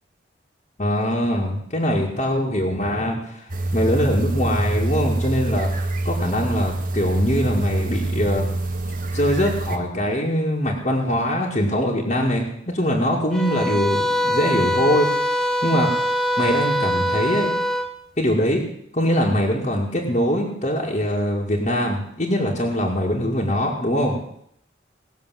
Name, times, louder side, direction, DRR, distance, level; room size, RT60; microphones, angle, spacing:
voice 1, 0.8-8.5 9.1-12.5 12.7-17.6 18.2-18.6 18.9-24.2, equal, 35° left, -5 dB, 2.3 m, -22 dB
sound 1, 3.5-9.8, right 2 dB, 45° right, 1.4 m, -25 dB
sound 2, 13.3-17.9, equal, 5° left, 0.8 m, -23 dB
19.0 x 7.3 x 7.7 m, 0.73 s
head